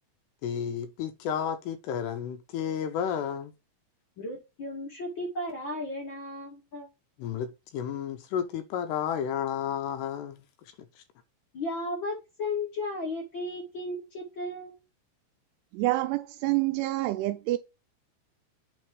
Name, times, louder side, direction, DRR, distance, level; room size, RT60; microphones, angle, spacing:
voice 1, 0.4-3.5 7.2-10.4, left 8 dB, 80° left, 2.6 m, -32 dB
voice 2, 4.2-6.9 11.5-14.7, left 2 dB, 40° left, 1.8 m, -35 dB
voice 3, 15.7-17.6, right 17 dB, 80° right, 2.5 m, -27 dB
8.7 x 3.5 x 4.6 m
omnidirectional pair, 5.1 m